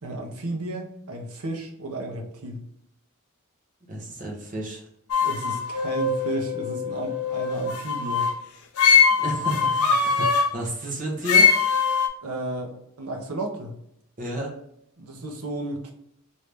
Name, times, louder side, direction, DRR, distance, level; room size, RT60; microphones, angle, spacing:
voice 1, 0.0-2.6 5.2-8.3 12.2-13.7 15.0-15.9, right 2 dB, 75° right, 3 dB, 0.8 m, -33 dB
voice 2, 3.9-4.8 9.2-11.5 14.2-14.5, right 1 dB, 35° right, -1 dB, 0.9 m, -31 dB
sound 1, 5.1-8.4 8.8-10.5 11.2-12.1, left 5 dB, 80° left, 0.5 m, -22 dB
3.2 x 2.7 x 3.3 m, 0.75 s
head